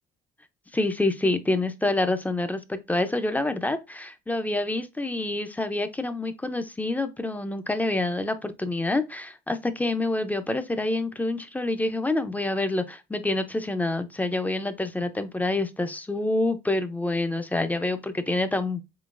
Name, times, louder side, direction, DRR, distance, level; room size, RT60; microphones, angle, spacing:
voice 1, 0.7-18.8, left 2 dB, 10° left, 0.4 m, -27 dB
4.0 x 3.8 x 2.4 m
cardioid pair, 110°, 17 cm